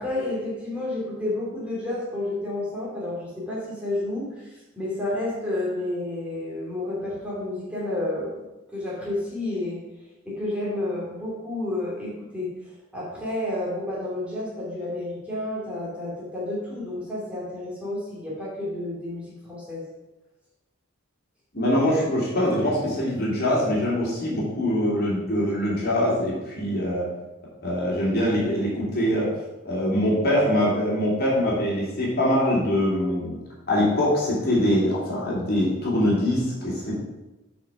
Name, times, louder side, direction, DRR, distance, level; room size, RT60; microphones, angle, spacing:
voice 1, 0.0-8.4 8.7-9.8 10.2-19.8, left 1 dB, 5° right, -6 dB, 2.6 m, -30 dB
voice 2, 21.5-27.1 27.6-29.4 29.6-33.4 33.7-37.0, left 1 dB, 45° left, -5 dB, 3.1 m, -23 dB
8.9 x 5.2 x 5.7 m, 1.1 s
head